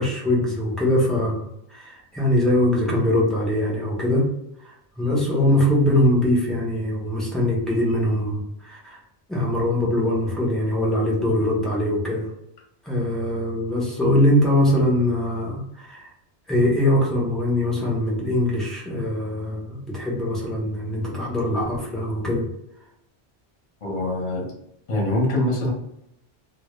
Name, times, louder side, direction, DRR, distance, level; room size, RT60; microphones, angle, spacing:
voice 1, 0.0-4.3 4.6-9.0 9.3-12.3 12.8-16.1 16.5-22.5, left 1 dB, ahead, -4 dB, 0.3 m, -22 dB
voice 2, 23.8-24.5 24.9-25.7, left 1 dB, 40° left, -2 dB, 0.7 m, -24 dB
2.1 x 2.0 x 3.0 m, 0.80 s
omnidirectional pair, 1.2 m